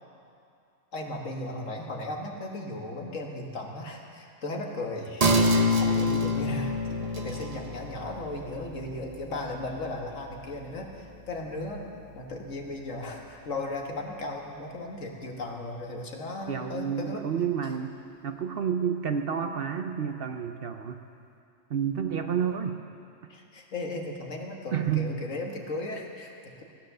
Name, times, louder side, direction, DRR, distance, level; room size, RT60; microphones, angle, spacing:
voice 1, 0.9-17.2 23.3-26.6, left 2 dB, 75° left, 1 dB, 1.8 m, -36 dB
sound 1, 5.2-12.2 12.6-12.7, left 1 dB, 30° right, 1.0 m, -28 dB
voice 2, 16.5-18.0 18.2-21.0 21.7-22.8 24.7-25.1, right 8 dB, 55° right, 6 dB, 0.8 m, -30 dB
16.0 x 10.5 x 6.6 m, 2.5 s
omnidirectional pair, 1.3 m